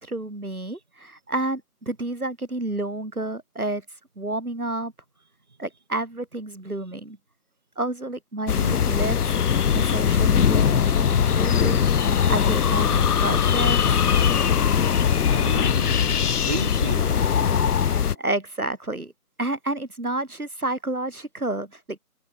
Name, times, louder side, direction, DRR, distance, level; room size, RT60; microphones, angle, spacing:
voice 1, 0.0-3.9 4.2-4.9 5.6-7.2 7.8-9.2 9.7-11.9 12.3-13.8 17.8-19.1 19.4-22.0, right 2 dB, 70° right, 5.1 m, -30 dB
sound 1, 8.5-18.1, left 7 dB, 75° left, 0.5 m, -21 dB
voice 2, 15.3-17.3, right 3 dB, 30° right, 3.7 m, -34 dB
figure-of-eight pair, 165°, 46 cm